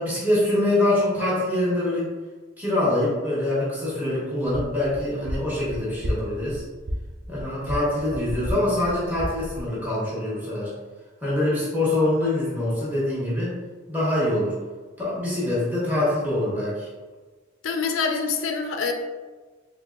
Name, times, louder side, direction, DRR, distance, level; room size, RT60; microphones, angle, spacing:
voice 1, 0.0-2.1 2.6-6.6 7.3-10.7 11.2-13.5 13.9-14.6 15.0-16.9, left 1 dB, 10° right, -8 dB, 1.1 m, -24 dB
sound 1, 4.4-9.7, equal, 35° right, 0.4 m, -33 dB
voice 2, 17.6-18.9, left 5 dB, 75° left, 4 dB, 0.4 m, -25 dB
3.8 x 3.0 x 2.4 m, 1.3 s
head